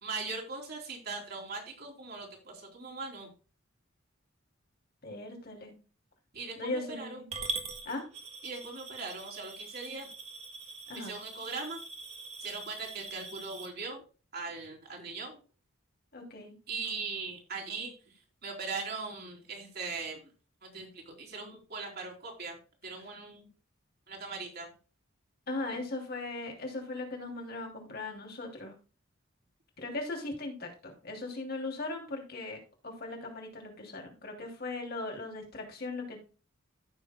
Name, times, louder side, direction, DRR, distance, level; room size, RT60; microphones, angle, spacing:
voice 1, 0.0-3.3 6.3-7.2 8.4-10.1 10.9-11.8 12.4-14.0 14.3-15.4 16.7-20.3 20.6-22.6 22.8-23.5 24.1-24.7 25.7-25.8, right 4 dB, 50° right, 0 dB, 3.3 m, -40 dB
voice 2, 5.0-5.7 6.6-7.3 7.8-8.1 10.9-11.1 16.1-16.5 25.5-28.7 29.8-32.6 32.8-36.2, left 2 dB, 50° left, 1 dB, 2.9 m, -38 dB
Coin (dropping) / Glass, 7.3-13.7, right 3 dB, 30° right, 1.7 m, -42 dB
14.5 x 6.5 x 2.2 m, 0.34 s
head